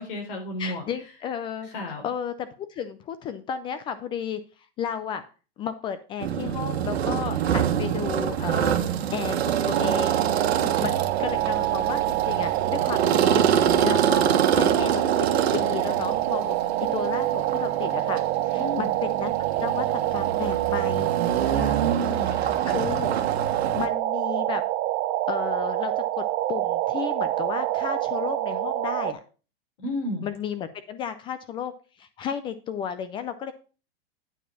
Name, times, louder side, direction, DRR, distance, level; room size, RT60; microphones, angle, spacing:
voice 1, 0.0-0.8 1.6-2.0 10.5-10.8 18.6-18.9 21.4-22.6 29.8-30.3, left 1 dB, 60° left, 2 dB, 4.0 m, -33 dB
voice 2, 0.6-1.7 2.0-4.4 4.8-5.2 5.6-8.8 9.1-10.2 10.8-13.4 13.8-15.3 15.5-16.6 16.9-19.3 19.6-21.1 22.6-23.1 23.5-24.6 25.3-29.2 30.2-31.7 32.0-33.5, left 8 dB, 15° left, 12 dB, 0.3 m, -33 dB
sound 1, 6.2-23.9, right 9 dB, 85° right, 1.4 m, -26 dB
sound 2, 9.7-29.1, right 15 dB, 35° right, 0.8 m, -26 dB
9.0 x 5.0 x 5.7 m, 0.36 s
supercardioid pair, 140°, 31 cm